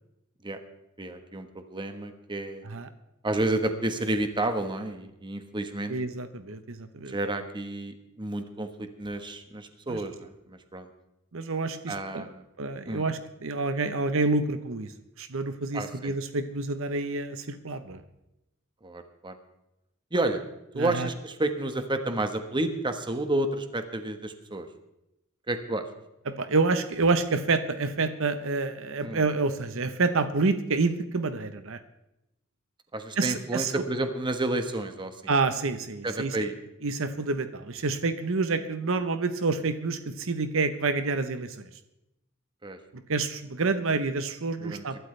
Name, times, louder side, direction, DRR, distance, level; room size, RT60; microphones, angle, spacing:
voice 1, 1.0-2.6 3.2-5.9 7.1-10.9 11.9-12.4 12.9-13.1 15.7-16.1 18.8-19.4 20.1-20.4 20.7-24.7 25.5-25.8 29.0-29.2 32.9-35.2 36.0-36.5 42.6-42.8 44.6-44.8, right 2 dB, 25° right, 7 dB, 1.3 m, -30 dB
voice 2, 5.9-7.1 9.9-10.0 11.3-12.2 12.6-14.9 15.2-18.0 20.8-21.1 26.3-31.8 33.2-33.8 35.3-36.3 36.8-41.6 43.1-45.0, right 3 dB, 70° right, 10 dB, 1.0 m, -28 dB
23.0 x 12.5 x 3.3 m, 0.88 s
head